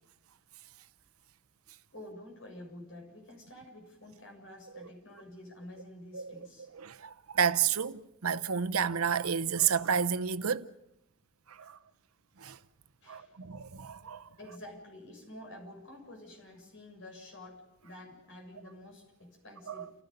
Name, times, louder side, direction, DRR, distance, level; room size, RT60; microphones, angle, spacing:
voice 1, 1.9-6.7 13.0-13.4 14.4-19.9, left 1 dB, 60° left, 7.2 m, -49 dB
voice 2, 6.7-10.7 11.5-11.8 12.4-12.6 13.1-14.3 19.7-19.9, right 7 dB, 85° right, 0.8 m, -31 dB
30.0 x 16.0 x 6.8 m
head